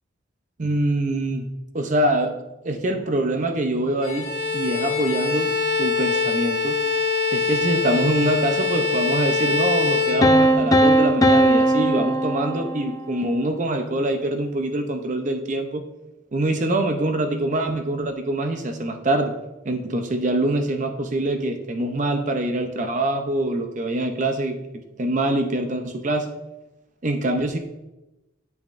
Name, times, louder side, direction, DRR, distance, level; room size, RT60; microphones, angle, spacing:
voice 1, 0.6-1.5 1.7-2.3 2.6-5.5 5.8-6.8 7.3-15.8 16.3-19.3 19.6-24.6 25.0-26.3 27.0-27.6, right 1 dB, 40° right, 6 dB, 0.6 m, -24 dB
Bowed string instrument, 4.0-10.8, left 4 dB, 45° left, 1.5 m, -23 dB
sound 1, 10.2-13.1, right 1 dB, 15° left, 0.4 m, -18 dB
8.2 x 6.9 x 2.5 m, 0.98 s
head